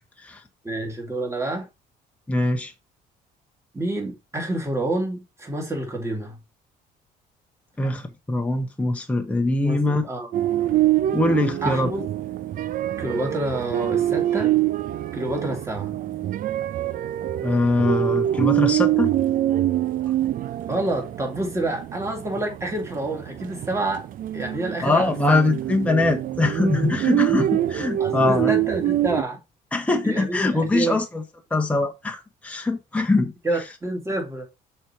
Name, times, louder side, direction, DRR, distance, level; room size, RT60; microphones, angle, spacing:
voice 1, 0.6-1.7 3.7-6.4 9.6-10.3 11.6-12.0 13.0-14.6 15.1-15.9 20.7-24.0 24.3-25.4 28.0-29.4 30.0-31.0 33.4-34.5, right 2 dB, 15° right, 2.9 m, -28 dB
voice 2, 2.3-2.7 7.8-10.1 11.1-11.9 17.4-19.1 24.8-28.5 29.7-31.2 31.5-33.3, left 2 dB, 10° left, 1.1 m, -22 dB
jazz street musicians, 10.3-29.2, right 13 dB, 55° right, 0.6 m, -25 dB
6.2 x 4.2 x 4.7 m
cardioid pair, 110°, 17 cm